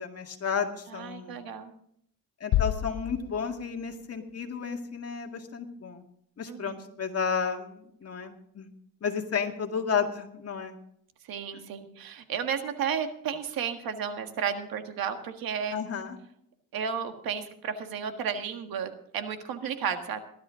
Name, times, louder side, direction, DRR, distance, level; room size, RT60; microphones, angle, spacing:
voice 1, 0.0-1.4 2.4-6.0 6.4-8.7 9.0-10.7 15.7-16.2, left 6 dB, 45° left, 3 dB, 2.1 m, -32 dB
voice 2, 0.9-1.7 6.5-6.8 11.2-15.9 16.7-20.2, right 7 dB, 85° right, 7 dB, 1.7 m, -33 dB
sound 1, 2.5-4.3, left 14 dB, 80° left, 0.5 m, -30 dB
18.5 x 12.0 x 3.7 m, 0.68 s
cardioid pair, 100°, 35 cm